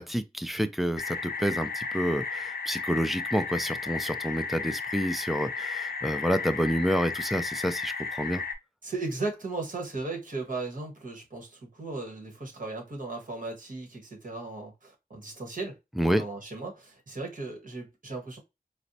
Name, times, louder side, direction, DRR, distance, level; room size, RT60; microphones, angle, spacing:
voice 1, 0.0-8.4 16.0-16.2, equal, ahead, 0.3 m, -29 dB
sound 1, 1.0-8.5, left 5 dB, 75° left, 0.5 m, -34 dB
voice 2, 8.8-15.8 16.0-18.4, right 3 dB, 55° right, 1.2 m, -36 dB
4.3 x 2.0 x 2.6 m
wide cardioid pair, 95°, 16 cm